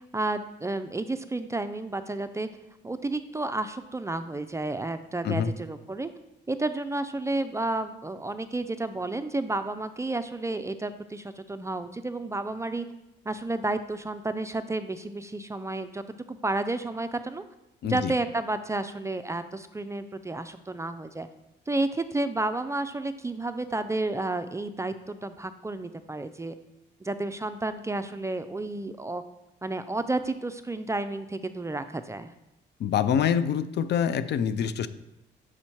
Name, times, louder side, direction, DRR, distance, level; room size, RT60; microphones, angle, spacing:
voice 1, 0.1-2.5 2.8-6.1 6.5-12.9 13.3-17.4 17.8-21.3 21.7-26.5 27.0-29.2 29.6-32.3, right 2 dB, 15° right, 10 dB, 0.3 m, -31 dB
voice 2, 17.8-18.1 32.8-34.9, left 8 dB, 60° left, 13 dB, 0.4 m, -25 dB
6.2 x 4.4 x 4.4 m, 0.95 s
cardioid pair, 90°, 20 cm